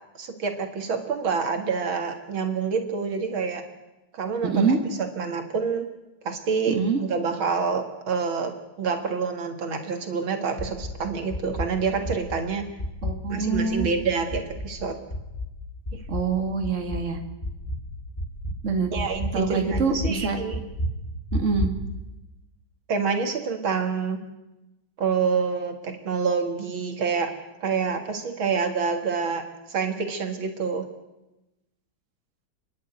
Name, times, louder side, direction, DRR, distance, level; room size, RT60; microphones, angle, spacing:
voice 1, 0.2-3.6 4.1-5.9 6.2-12.6 13.3-15.0 18.9-20.6 22.9-24.2 25.0-27.3 27.6-29.4 29.7-30.9, right 5 dB, 75° right, 5 dB, 2.7 m, -27 dB
voice 2, 6.7-7.0 13.0-13.9 16.1-17.2 18.6-18.9 19.3-20.4 21.3-21.7, right 4 dB, 35° right, 4 dB, 2.4 m, -25 dB
sound 1, 10.6-11.0 11.3-11.7 12.1-12.4 12.8-13.2 13.5-14.0 14.3-14.7 15.1-15.5 15.9-16.3 16.6-17.0 17.4-17.9 18.2-18.6 19.0-19.3 19.7-20.2 20.5-20.9 21.3-21.8, equal, 25° left, 3.8 m, -30 dB
29.5 x 11.0 x 9.2 m, 0.99 s
omnidirectional pair, 2.3 m